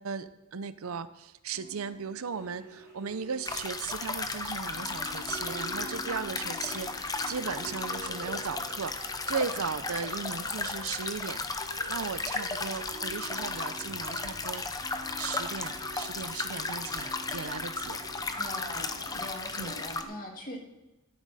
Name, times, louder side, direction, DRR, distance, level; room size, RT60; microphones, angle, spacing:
voice 1, 0.0-11.4 11.9-14.7 15.2-18.0 19.6-19.7, right 6 dB, 75° right, 14 dB, 0.6 m, -37 dB
sound 1, 1.5-19.6, right 1 dB, 35° right, 2.3 m, -48 dB
sound 2, 2.3-18.3, equal, 15° right, 3.6 m, -61 dB
sound 3, 3.4-20.0, left 3 dB, 15° left, 0.6 m, -35 dB
voice 2, 18.3-20.6, left 1 dB, 40° left, 1 dB, 2.1 m, -41 dB
13.5 x 10.5 x 4.1 m, 1.0 s
head